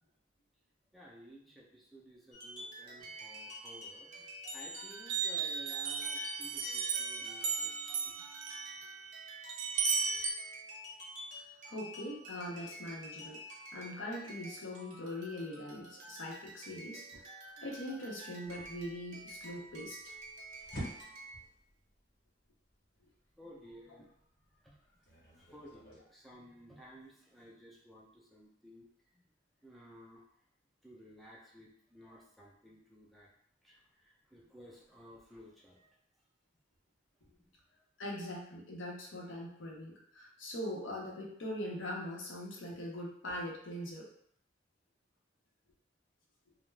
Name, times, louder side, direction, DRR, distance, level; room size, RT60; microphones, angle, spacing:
voice 1, 0.9-8.3 23.4-24.2 24.4-29.2 29.6-30.2 30.8-33.3 33.6-35.9 37.4-37.5, equal, ahead, -4 dB, 0.4 m, -56 dB
sound 1, 2.3-21.4, right 1 dB, 40° right, 0.7 m, -50 dB
sound 2, 3.0-4.1 4.5-10.3, right 5 dB, 75° right, 0.4 m, -36 dB
voice 2, 11.7-13.4 13.7-17.2 17.6-20.0 38.0-44.0, left 1 dB, 80° left, -3 dB, 0.7 m, -42 dB
sound 3, 18.4-26.0, equal, 50° left, 1.0 m, -51 dB
2.3 x 2.0 x 3.1 m, 0.69 s
head